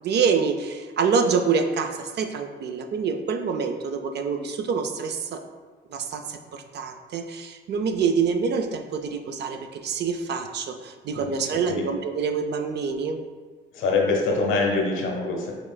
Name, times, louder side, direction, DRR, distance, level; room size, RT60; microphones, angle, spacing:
voice 1, 0.0-5.4 5.9-13.2, right 5 dB, 60° right, 6 dB, 0.5 m, -26 dB
voice 2, 11.1-11.8 13.7-15.5, left 3 dB, 80° left, 0 dB, 0.9 m, -25 dB
5.9 x 3.2 x 2.2 m, 1.5 s
cardioid pair, 90°, 20 cm